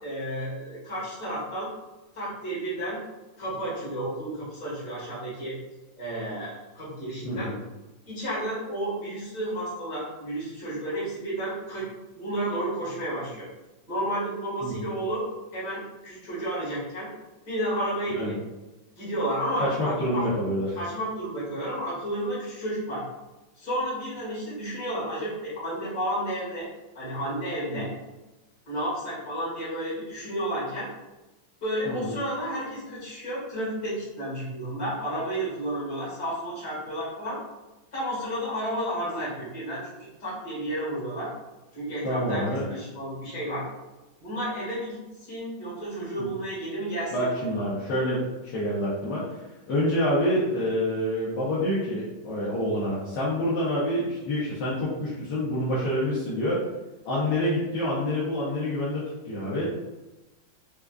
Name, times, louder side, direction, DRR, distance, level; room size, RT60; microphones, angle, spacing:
voice 1, 0.0-1.7 2.1-3.0 3.4-5.5 6.0-7.5 8.1-11.9 12.1-13.5 13.9-15.2 15.5-17.1 17.5-18.4 19.0-20.2 20.7-23.0 23.6-26.7 26.9-27.9 28.7-30.9 31.6-37.4 37.9-41.3 41.7-42.4 42.7-43.7 44.2-47.6, right 1 dB, 45° left, -7 dB, 1.9 m, -32 dB
voice 2, 19.6-20.7 27.7-27.8 31.8-32.1 42.0-42.7 47.1-49.4 49.7-56.6 57.0-59.6, left 1 dB, 70° left, -9 dB, 1.4 m, -27 dB
4.7 x 2.4 x 2.3 m, 1.1 s
omnidirectional pair, 2.0 m